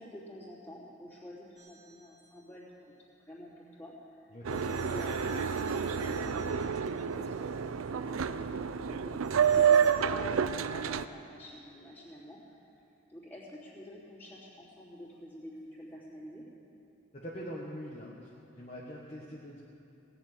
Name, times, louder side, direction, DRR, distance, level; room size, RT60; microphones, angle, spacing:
voice 1, 0.0-2.6 3.2-4.5 4.9-12.6 13.1-16.4, left 1 dB, 10° left, -7 dB, 3.1 m, -48 dB
sound 1, 1.6-2.3 4.5-7.1 9.2-10.0, right 1 dB, 20° right, 2.2 m, -51 dB
voice 2, 4.3-4.8 9.6-9.8 17.1-18.3 18.6-19.6, equal, 30° left, -5 dB, 1.3 m, -43 dB
Boat Water vehicle, 4.4-11.1, right 7 dB, 75° right, 0.5 m, -29 dB
17.5 x 7.2 x 9.1 m, 2.8 s
head